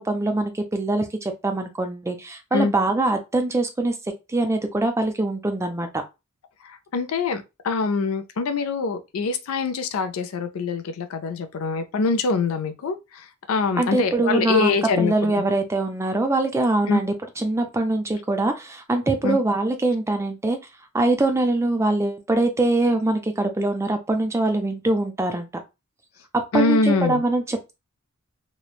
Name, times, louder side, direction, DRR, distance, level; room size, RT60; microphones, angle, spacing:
voice 1, 0.0-3.9 4.3-6.0 13.8-14.7 15.0-20.6 20.9-25.6 26.3-27.7, right 2 dB, 15° right, 0.3 m, -23 dB
voice 2, 6.6-15.3 16.9-17.0 19.2-19.4 26.5-27.2, left 4 dB, 75° left, 0.4 m, -24 dB
3.0 x 2.0 x 2.3 m
head